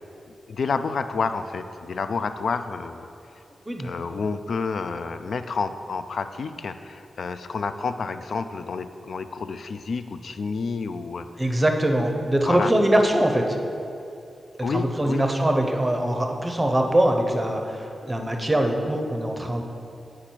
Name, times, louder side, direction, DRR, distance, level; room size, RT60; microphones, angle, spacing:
voice 1, 0.3-3.1 3.8-11.6 12.5-12.7 14.6-15.3, left 4 dB, 60° left, 10 dB, 0.3 m, -29 dB
voice 2, 11.4-13.6 14.7-19.6, right 1 dB, 15° right, 3 dB, 0.6 m, -22 dB
8.5 x 4.9 x 4.5 m, 2.7 s
wide cardioid pair, 135°, 0 cm